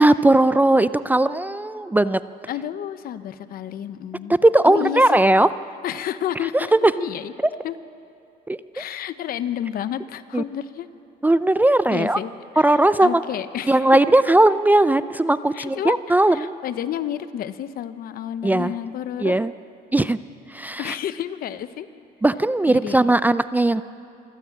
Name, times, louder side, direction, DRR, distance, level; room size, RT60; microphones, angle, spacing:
voice 1, 0.0-2.2 4.4-5.5 6.5-7.1 8.5-8.6 10.3-10.4 11.2-12.2 12.6-13.2 13.7-16.6 18.4-18.7 19.2-19.5 19.9-20.2 20.5-20.9 22.2-23.8, right 1 dB, 10° right, 14 dB, 0.4 m, -18 dB
voice 2, 2.5-4.4 4.6-5.2 5.8-7.3 7.6-7.8 8.7-10.9 11.9-13.9 15.5-16.0 16.3-19.4 20.8-21.9 22.7-23.0, left 10 dB, 60° left, 13 dB, 0.9 m, -30 dB
26.5 x 14.5 x 7.5 m, 2.7 s
cardioid pair, 110°, 17 cm